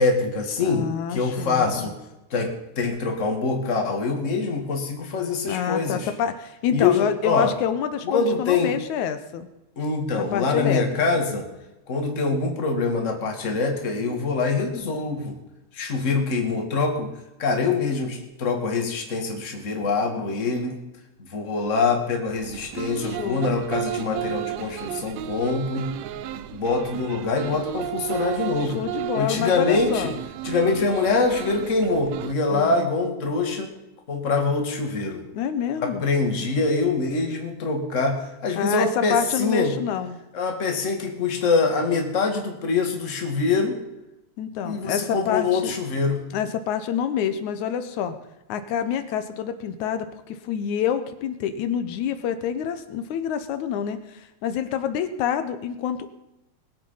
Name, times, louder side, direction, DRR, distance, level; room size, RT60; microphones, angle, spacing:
voice 1, 0.0-2.0 2.3-6.1 6.7-7.5 8.0-8.8 9.8-11.5 11.9-15.4 15.7-17.1 17.4-20.8 21.2-25.9 26.5-28.8 29.2-30.1 30.4-33.7 34.1-35.2 35.8-39.8 40.3-43.8 44.6-46.2, left 4 dB, 30° left, 3 dB, 2.0 m, -24 dB
voice 2, 0.6-1.9 5.5-9.5 10.2-10.8 11.1-11.2 23.0-23.6 28.6-30.1 32.5-32.9 35.3-36.0 38.6-40.2 44.4-45.7 46.3-48.1 48.5-56.1, left 8 dB, 85° left, 10 dB, 2.3 m, -27 dB
sound 1, 22.3-32.3, right 12 dB, 75° right, 1.8 m, -33 dB
20.5 x 8.1 x 5.6 m, 0.92 s
omnidirectional pair, 3.3 m